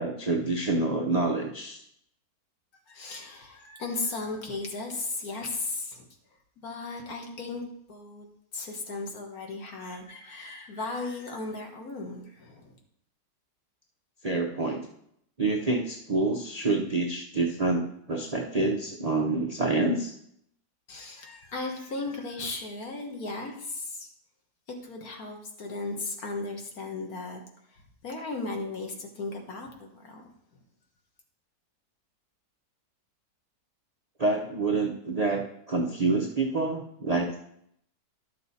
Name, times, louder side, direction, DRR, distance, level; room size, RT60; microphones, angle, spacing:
voice 1, 0.0-1.8 14.2-14.9 15.4-20.1 34.2-37.4, right 3 dB, 55° right, 1 dB, 0.4 m, -27 dB
voice 2, 2.9-6.1 6.6-7.6 7.9-8.3 8.5-12.8 20.9-24.1 24.8-27.4 27.7-30.3, left 3 dB, 55° left, 2 dB, 1.7 m, -36 dB
11.5 x 6.5 x 4.1 m, 0.72 s
omnidirectional pair, 1.9 m